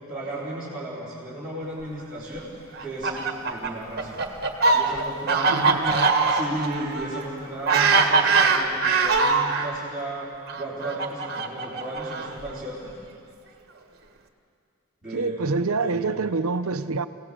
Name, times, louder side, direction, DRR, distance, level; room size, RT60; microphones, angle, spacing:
voice 1, 0.1-2.5 2.8-4.2 4.7-6.0 6.3-10.3 10.6-12.9 15.0-16.2, right 1 dB, 5° right, 4.3 m, -34 dB
Fowl, 2.7-9.7 10.5-12.5, right 4 dB, 45° right, 1.6 m, -22 dB
voice 2, 5.5-6.1 15.1-17.1, right 3 dB, 75° right, 0.7 m, -26 dB
27.5 x 17.5 x 7.8 m
head